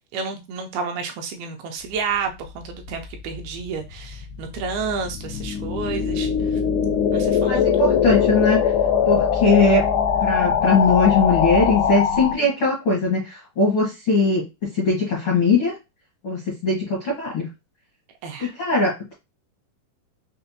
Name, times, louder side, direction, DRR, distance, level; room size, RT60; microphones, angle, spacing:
voice 1, 0.1-6.6 7.1-8.1 18.2-18.5, right 5 dB, 80° right, 2.3 m, -30 dB
sound 1, 3.0-12.3, left 7 dB, 90° left, 2.7 m, -21 dB
voice 2, 7.4-8.6 9.0-9.8 10.2-14.4 14.7-15.7 16.2-17.5 18.4-19.1, left 3 dB, 70° left, 1.2 m, -20 dB
6.5 x 2.2 x 2.7 m
omnidirectional pair, 4.6 m